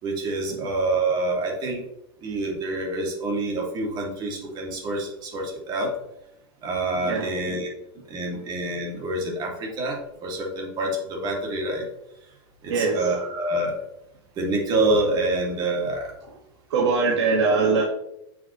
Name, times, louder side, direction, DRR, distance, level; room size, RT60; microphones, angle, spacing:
voice 1, 0.0-1.8 2.2-5.9 6.6-7.7 8.1-11.9 12.6-13.8 14.4-16.2 17.4-17.6, right 2 dB, 30° right, 0 dB, 2.5 m, -27 dB
voice 2, 7.0-7.3 12.7-13.2 16.7-17.8, right 4 dB, 80° right, -2 dB, 1.8 m, -22 dB
9.3 x 6.1 x 3.2 m, 0.83 s
supercardioid pair, 150°, 14 cm